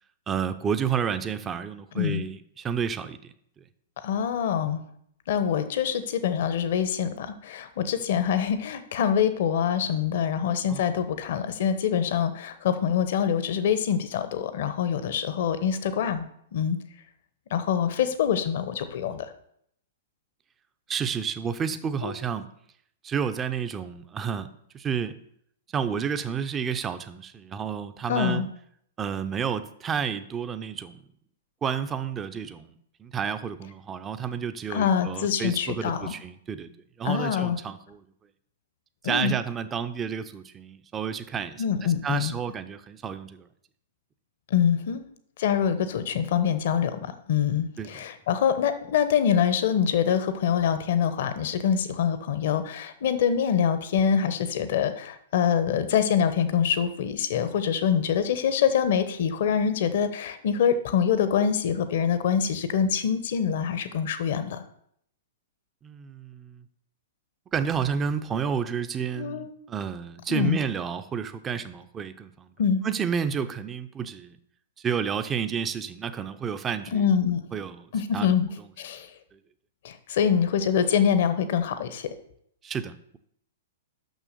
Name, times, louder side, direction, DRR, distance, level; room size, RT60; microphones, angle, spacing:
voice 1, 0.3-3.2 10.7-10.9 20.9-22.5 23.0-24.5 24.7-25.2 25.7-28.5 29.0-31.0 31.6-32.7 33.0-36.7 37.0-38.0 39.0-43.5 47.8-47.9 65.8-66.6 67.5-72.5 72.8-74.4 74.8-77.0 77.5-77.9 78.1-78.7 79.3-79.4 82.6-83.2, right 7 dB, 20° right, 10 dB, 0.6 m, -30 dB
voice 2, 4.0-4.8 5.3-16.3 16.5-16.8 17.5-19.3 22.0-22.1 28.1-28.5 34.7-36.1 37.0-37.6 39.0-39.3 41.6-42.3 44.5-45.0 45.4-64.6 69.2-69.5 70.3-70.6 72.6-72.8 76.9-77.4 77.9-78.5 78.8-79.1 79.8-82.1, left 8 dB, 60° left, 11 dB, 1.0 m, -25 dB
6.4 x 6.2 x 6.7 m, 0.69 s
figure-of-eight pair, 110°, 0 cm